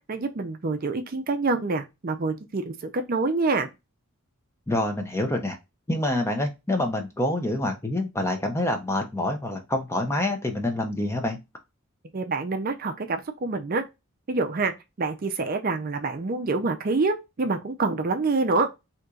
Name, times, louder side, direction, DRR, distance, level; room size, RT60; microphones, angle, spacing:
voice 1, 0.0-3.7 12.1-13.8 14.3-14.7 15.0-18.7, right 3 dB, 40° right, 0.4 m, -26 dB
voice 2, 4.7-5.6 5.9-11.4, left 1 dB, 10° left, 0.5 m, -26 dB
3.9 x 2.9 x 2.3 m
head